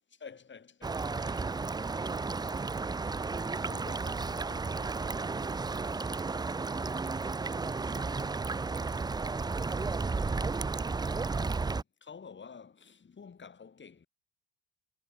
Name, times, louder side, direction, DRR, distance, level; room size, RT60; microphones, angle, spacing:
voice 1, 0.1-1.5 11.1-14.1, left 6 dB, 35° left, 5.4 m, -51 dB
sound 1, 0.8-11.8, right 4 dB, 10° right, 0.6 m, -33 dB
voice 2, 2.4-2.5, left 14 dB, 60° left, 2.4 m, -58 dB
hypercardioid pair, 60°, 34 cm